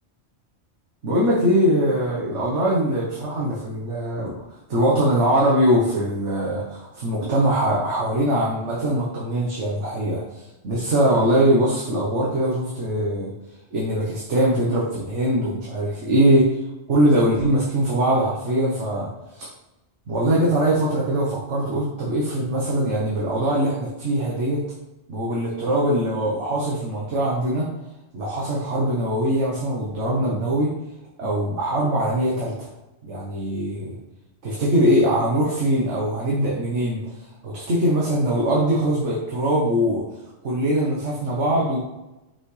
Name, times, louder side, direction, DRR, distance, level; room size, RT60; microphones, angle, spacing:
voice 1, 1.0-13.3 13.7-16.6 16.9-19.5 20.1-24.6 25.1-27.7 28.1-30.7 31.2-32.7 33.0-34.0 34.4-40.0 40.4-41.8, right 1 dB, 65° right, -4 dB, 1.4 m, -22 dB
6.0 x 5.6 x 3.2 m, 0.99 s
omnidirectional pair, 1.3 m